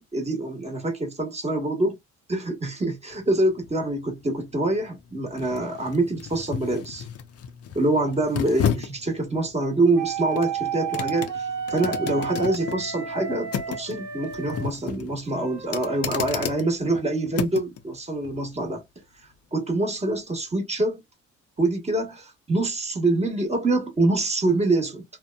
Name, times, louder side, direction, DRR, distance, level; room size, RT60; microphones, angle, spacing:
voice 1, 0.0-2.0 2.3-7.0 7.7-18.8 19.5-21.0 21.6-25.0, right 2 dB, 20° right, 1.1 m, -25 dB
sound 1, 3.1-17.8 18.2-18.4, left 8 dB, 55° left, 0.5 m, -34 dB
sound 2, 10.0-14.6 15.3-16.6, right 7 dB, 70° right, 1.3 m, -32 dB
2.8 x 2.1 x 2.2 m
cardioid pair, 90°, 30 cm